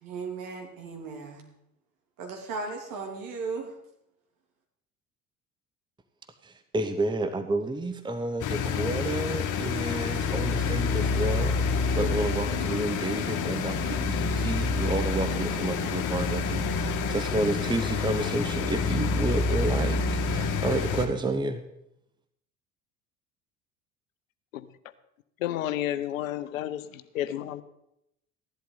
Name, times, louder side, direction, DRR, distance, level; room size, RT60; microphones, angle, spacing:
voice 1, 0.0-1.5 2.2-3.7, right 4 dB, 55° right, 2.9 m, -36 dB
voice 2, 6.4-21.6, right 2 dB, 10° right, 0.9 m, -30 dB
sound 1, 8.4-21.1, left 4 dB, 45° left, 1.8 m, -28 dB
voice 3, 25.4-26.8 27.1-27.6, left 12 dB, 75° left, 0.8 m, -30 dB
15.5 x 11.5 x 4.0 m
figure-of-eight pair, 65°, 41 cm